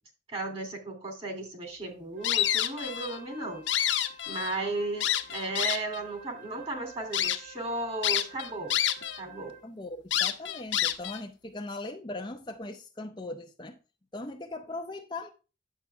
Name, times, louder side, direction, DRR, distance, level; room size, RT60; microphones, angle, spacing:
voice 1, 0.3-3.7 4.3-8.7 9.2-9.6, right 2 dB, 30° right, 2.8 m, -35 dB
Wind instrument woodwind instrument, 2.1-9.8, right 1 dB, 50° right, 2.9 m, -50 dB
sound 1, 2.2-3.2 3.5-4.6 5.0-6.0 6.6-6.7 7.1-7.4 8.0-9.2 9.5-9.6 10.1-11.2, left 11 dB, 80° left, 1.1 m, -28 dB
voice 2, 9.6-13.8 14.1-15.3, left 2 dB, 25° left, 0.7 m, -39 dB
9.9 x 7.4 x 3.4 m
head